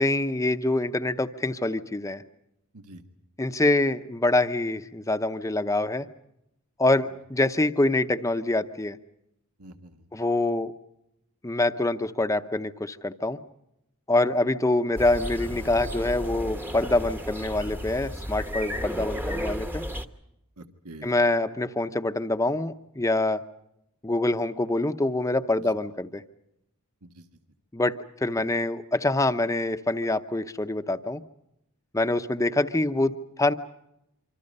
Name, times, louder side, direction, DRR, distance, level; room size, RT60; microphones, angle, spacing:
voice 1, 0.0-2.2 3.4-6.1 6.8-9.0 10.1-10.7 11.4-13.4 14.1-19.8 21.0-23.4 24.0-26.2 27.7-27.9 28.2-31.2 31.9-33.5, left 2 dB, 15° left, 9 dB, 0.8 m, -25 dB
voice 2, 2.7-3.0 9.6-10.1 14.1-14.2 20.6-21.3 25.6-25.7 27.0-27.3 28.4-28.5, right 1 dB, 80° right, 6 dB, 1.6 m, -47 dB
sound 1, 15.0-20.1, equal, 10° right, 1.0 m, -33 dB
26.5 x 26.0 x 5.4 m, 0.84 s
head